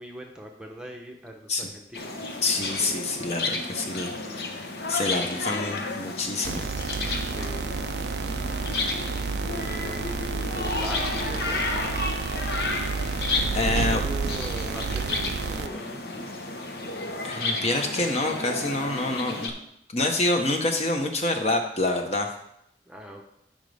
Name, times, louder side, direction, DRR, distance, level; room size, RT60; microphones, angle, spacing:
voice 1, 0.0-2.2 7.2-7.7 8.9-10.1 10.5-11.0 11.2-11.7 13.7-16.3 22.9-23.2, right 1 dB, 5° right, 1 dB, 0.8 m, -41 dB
sound 1, 1.9-19.5, left 3 dB, 65° left, 1.0 m, -32 dB
voice 2, 2.4-6.7 13.5-14.0 17.2-19.5 19.9-22.3, left 2 dB, 35° left, 4 dB, 1.0 m, -27 dB
sound 2, 6.4-15.7, right 5 dB, 70° right, 0.3 m, -30 dB
13.0 x 5.3 x 3.4 m, 0.78 s
head